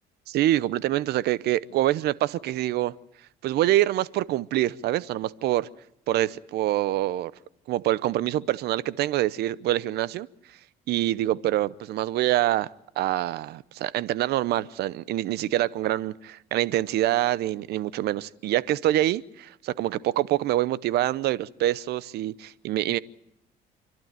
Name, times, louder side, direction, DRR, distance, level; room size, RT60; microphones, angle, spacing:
voice 1, 0.3-2.9 3.4-5.7 6.1-7.3 7.7-10.3 10.9-12.7 13.0-23.0, right 14 dB, 75° right, 0.8 m, -25 dB
28.5 x 12.0 x 9.1 m
cardioid pair, 110°, 17 cm